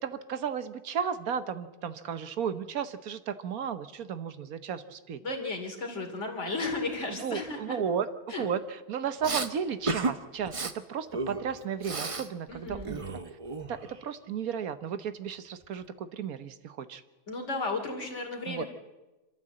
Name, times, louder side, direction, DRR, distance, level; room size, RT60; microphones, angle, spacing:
voice 1, 0.0-5.2 7.2-13.4 13.7-17.0 18.5-18.6, right 7 dB, 70° right, 12 dB, 1.4 m, -34 dB
voice 2, 5.2-7.8 8.3-8.4 12.5-12.9 17.3-18.7, left 3 dB, 50° left, 2 dB, 3.1 m, -34 dB
Respiratory sounds, 9.2-9.5 9.9-10.1 10.4-10.7 11.1-12.3 12.6-14.0, right 3 dB, 30° right, 0.7 m, -33 dB
25.5 x 13.5 x 7.7 m, 1.1 s
omnidirectional pair, 1.6 m